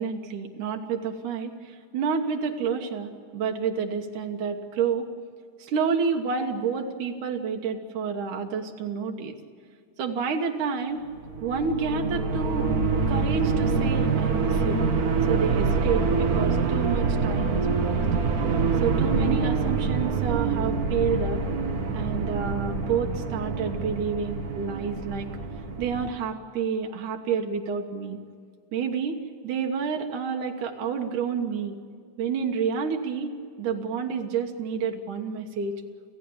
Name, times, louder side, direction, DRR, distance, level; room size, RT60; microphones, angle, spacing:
voice 1, 0.0-5.1 5.6-9.4 10.0-11.1 11.4-12.7 13.1-14.8 15.3-18.1 18.8-21.4 21.9-25.3 25.8-28.2 28.7-29.2 29.4-31.8 32.2-35.7, right 6 dB, 85° right, 2 dB, 2.9 m, -29 dB
sound 1, 11.1-26.1, right 4 dB, 50° right, 1.1 m, -25 dB
27.5 x 15.5 x 8.7 m, 2.2 s
omnidirectional pair, 3.5 m